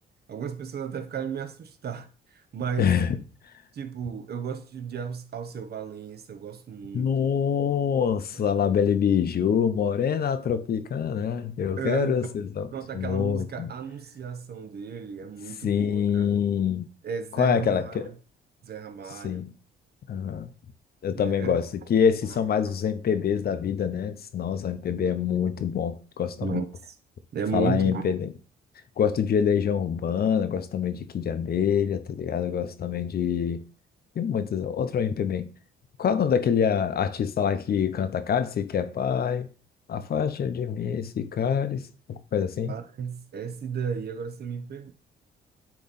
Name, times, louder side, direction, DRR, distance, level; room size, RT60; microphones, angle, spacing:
voice 1, 0.3-2.9 3.7-7.3 11.8-12.3 12.7-16.4 17.0-18.1 18.6-19.4 21.2-21.6 26.4-26.7 27.3-28.0 42.7-44.9, right 7 dB, 55° right, 0.8 m, -34 dB
voice 2, 2.8-3.2 6.9-12.7 12.9-13.7 15.6-16.9 17.3-18.1 19.2-19.5 20.1-20.5 21.0-26.6 27.5-28.3 29.0-33.6 34.2-35.5 36.0-39.5 39.9-41.8 42.1-42.7, left 7 dB, 50° left, 0.7 m, -25 dB
8.5 x 3.0 x 4.0 m
cardioid pair, 90°, 20 cm